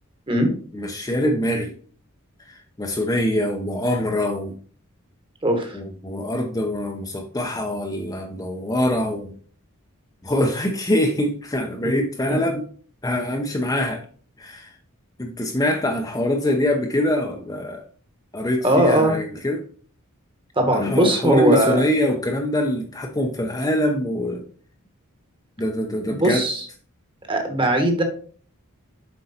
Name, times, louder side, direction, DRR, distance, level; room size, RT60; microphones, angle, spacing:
voice 1, 0.7-1.7 2.4-4.6 5.7-9.3 10.2-12.7 13.0-14.0 14.4-14.7 15.2-17.8 18.3-19.6 20.7-24.4 25.6-26.4, left 1 dB, 15° left, 2 dB, 0.8 m, -24 dB
voice 2, 5.4-5.8 18.6-19.1 20.5-21.8 26.1-26.6 27.3-28.0, right 1 dB, 25° right, 5 dB, 1.4 m, -19 dB
7.8 x 4.6 x 4.3 m, 0.44 s
head